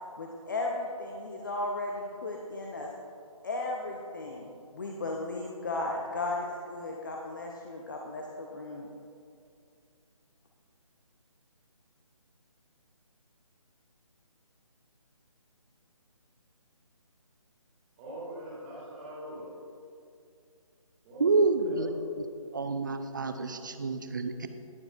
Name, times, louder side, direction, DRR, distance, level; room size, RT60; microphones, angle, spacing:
voice 1, 0.2-2.9 3.4-8.9, left 2 dB, 35° left, 0 dB, 0.7 m, -35 dB
voice 2, 18.0-19.5 21.0-21.9, equal, 15° right, -8 dB, 2.3 m, -42 dB
voice 3, 21.2-22.0 22.5-24.5, right 3 dB, 35° right, 8 dB, 0.5 m, -28 dB
19.0 x 7.0 x 2.5 m, 2.4 s
figure-of-eight pair, 150°, 18 cm